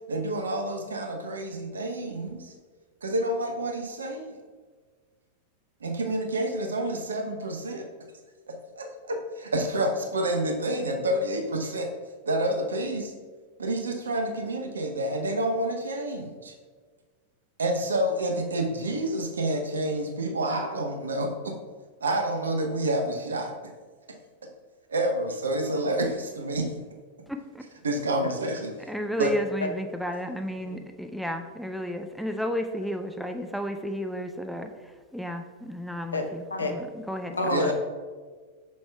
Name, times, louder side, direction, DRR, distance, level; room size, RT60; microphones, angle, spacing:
voice 1, 0.1-2.5 3.0-4.3 5.8-7.9 8.5-11.9 12.2-13.1 13.6-16.5 17.6-21.5 22.0-23.5 24.9-26.7 27.8-28.7 29.2-29.3 37.5-37.7, right 1 dB, 70° right, 4 dB, 0.7 m, -28 dB
voice 2, 27.3-27.7 28.9-37.7, equal, ahead, 5 dB, 0.4 m, -33 dB
voice 3, 37.3-37.7, left 3 dB, 75° left, 4 dB, 0.7 m, -28 dB
7.2 x 5.9 x 2.3 m, 1.5 s
figure-of-eight pair, 90°, 0 cm